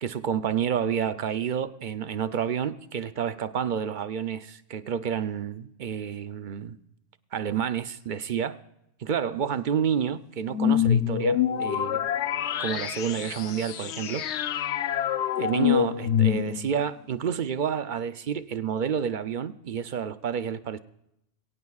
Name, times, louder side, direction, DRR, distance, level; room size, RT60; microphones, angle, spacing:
voice 1, 0.0-6.8 7.3-8.6 9.0-12.1 12.6-14.3 15.4-20.8, right 8 dB, 55° right, 0.6 m, -29 dB
sound 1, 10.5-16.8, left 9 dB, 70° left, 1.0 m, -26 dB
22.0 x 18.0 x 2.4 m
omnidirectional pair, 1.2 m